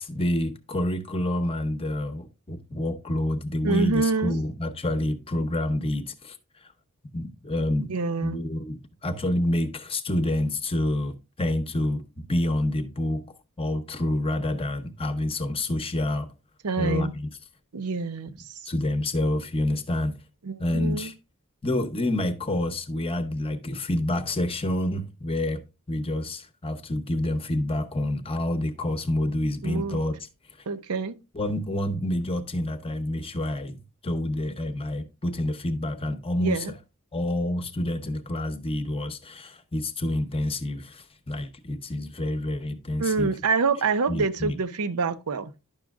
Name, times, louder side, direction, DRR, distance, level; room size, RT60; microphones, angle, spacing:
voice 1, 0.0-6.7 7.1-7.9 8.2-13.3 13.6-16.3 16.8-17.3 18.6-20.2 20.6-21.1 21.6-25.6 25.9-30.2 31.3-36.7 37.1-43.3 44.1-44.6, left 1 dB, 25° left, 0.8 m, -28 dB
voice 2, 3.6-4.4 7.9-8.4 16.6-17.1 17.7-18.4 20.4-21.1 29.6-30.0 30.7-31.1 36.4-36.7 43.0-45.5, right 4 dB, 90° right, 0.7 m, -26 dB
10.5 x 6.2 x 2.4 m
head